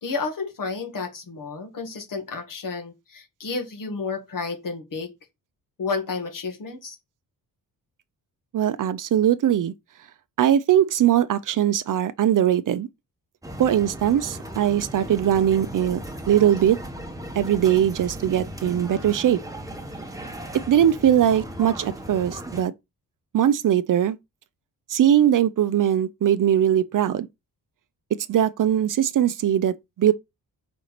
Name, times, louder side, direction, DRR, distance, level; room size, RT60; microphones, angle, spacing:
voice 1, 0.0-5.1 5.8-7.0, left 4 dB, 60° left, 2.1 m, -31 dB
voice 2, 8.5-9.7 10.4-12.9 13.6-16.0 16.3-16.8 17.3-19.4 20.5-22.7 23.3-24.2 24.9-27.3 28.3-30.1, right 10 dB, 60° right, 0.6 m, -20 dB
sound 1, 13.4-22.6, right 1 dB, 10° right, 1.2 m, -37 dB
5.1 x 4.5 x 5.8 m
cardioid pair, 120°, 37 cm